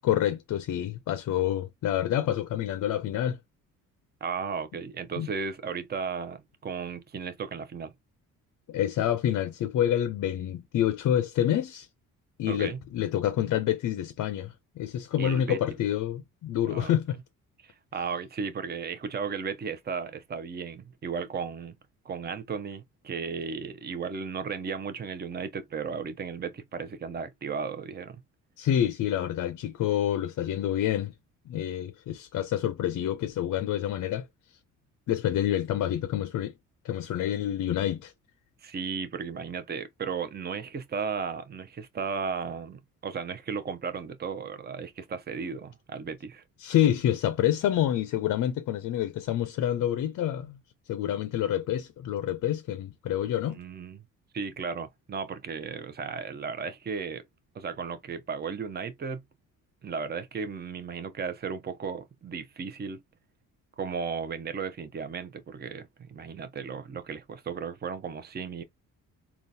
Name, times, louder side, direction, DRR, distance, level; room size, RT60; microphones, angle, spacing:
voice 1, 0.0-3.4 5.2-5.3 8.7-11.9 12.4-17.2 28.6-31.1 31.5-34.3 35.1-36.5 36.8-38.1 46.6-50.6 50.9-53.6, left 11 dB, 60° left, 0.5 m, -27 dB
voice 2, 4.2-7.9 12.4-12.8 15.2-15.6 16.7-17.0 17.6-21.7 22.0-28.2 38.6-46.4 53.5-54.0 54.3-57.2 57.5-59.2 59.8-63.0 63.8-68.6, right 5 dB, 30° right, 0.7 m, -35 dB
3.8 x 2.3 x 2.6 m
supercardioid pair, 70°, 34 cm